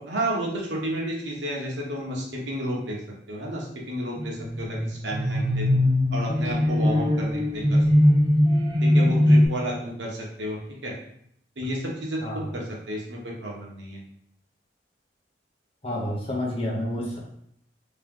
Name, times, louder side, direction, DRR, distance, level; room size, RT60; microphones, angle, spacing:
voice 1, 0.0-3.0 3.3-7.8 8.8-10.6 10.8-10.9 11.6-14.0, right 1 dB, 75° right, -2 dB, 1.1 m, -31 dB
sound 1, 4.2-9.5, left 1 dB, 25° right, 0.6 m, -21 dB
voice 2, 12.2-12.5 15.8-17.2, left 1 dB, 30° left, -3 dB, 0.8 m, -29 dB
3.2 x 2.9 x 3.7 m, 0.71 s
head